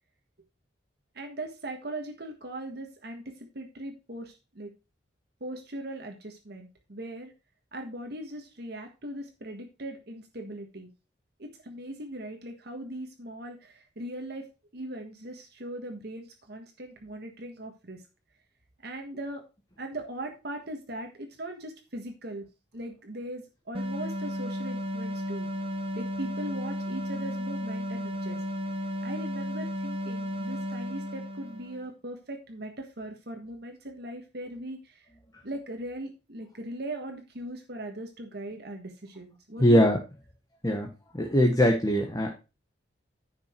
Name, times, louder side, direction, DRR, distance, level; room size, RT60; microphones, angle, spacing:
voice 1, 1.1-4.7 5.4-7.3 7.7-10.9 11.4-18.0 18.8-19.4 19.8-22.5 22.7-25.5 25.9-28.4 29.0-35.1 35.4-39.8, right 1 dB, 60° right, 4 dB, 1.5 m, -39 dB
sound 1, 23.7-31.9, left 1 dB, 30° right, 1.4 m, -34 dB
voice 2, 39.6-40.0 40.6-40.9 41.1-42.3, equal, 20° left, 2 dB, 1.3 m, -21 dB
10.0 x 5.8 x 4.5 m, 0.29 s
head